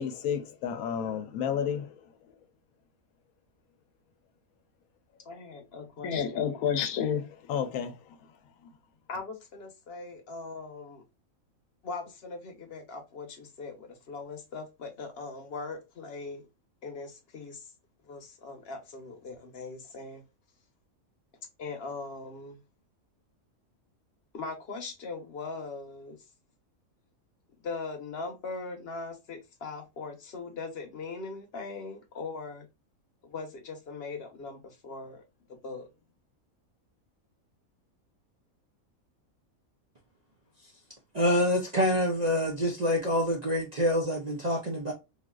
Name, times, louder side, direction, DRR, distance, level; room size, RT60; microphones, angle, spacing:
voice 1, 0.0-2.0 2.3-2.4 6.0-8.2, left 8 dB, 90° left, 1.1 m, -31 dB
voice 2, 5.3-6.5 9.1-11.0 11.8-16.5 16.8-17.7 18.1-20.2 21.6-22.6 24.3-26.2 27.6-32.7 33.2-35.2 35.6-35.9, left 4 dB, 50° left, 1.0 m, -40 dB
voice 3, 41.1-44.9, left 1 dB, 50° right, 0.5 m, -26 dB
3.8 x 2.5 x 2.3 m
omnidirectional pair, 1.5 m